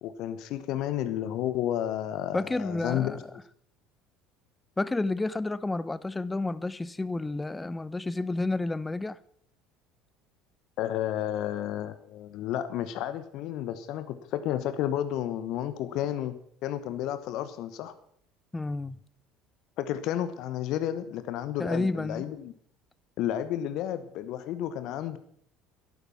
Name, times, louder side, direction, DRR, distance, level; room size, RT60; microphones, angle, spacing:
voice 1, 0.0-3.2 10.8-16.3 16.6-17.9 19.8-22.5 23.2-25.2, left 11 dB, 60° left, 1.1 m, -31 dB
voice 2, 2.3-3.2 4.8-9.2 18.5-19.0 21.6-22.3, left 2 dB, 15° left, 0.7 m, -30 dB
13.5 x 12.0 x 5.9 m
hypercardioid pair, 65°, 0 cm